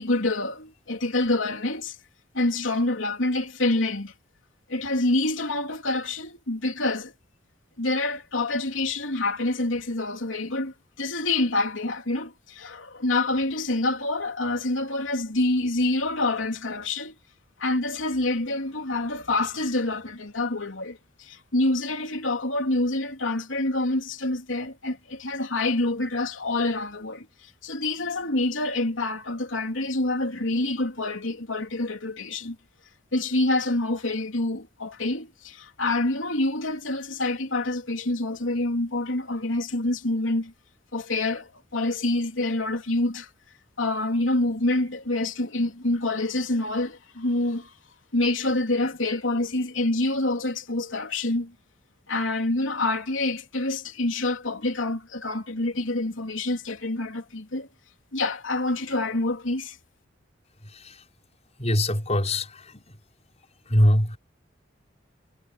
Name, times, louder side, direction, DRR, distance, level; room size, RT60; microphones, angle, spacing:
voice 1, 0.0-2.0 2.3-4.1 4.7-7.1 7.8-17.1 17.6-27.3 27.6-32.6 33.1-40.5 40.9-43.3 43.8-47.7 48.1-51.5 52.1-57.7 58.1-59.8, left 2 dB, 85° left, 3.2 m, -27 dB
voice 2, 60.6-61.0 61.6-63.0 63.7-64.2, left 1 dB, 35° left, 5.5 m, -23 dB
head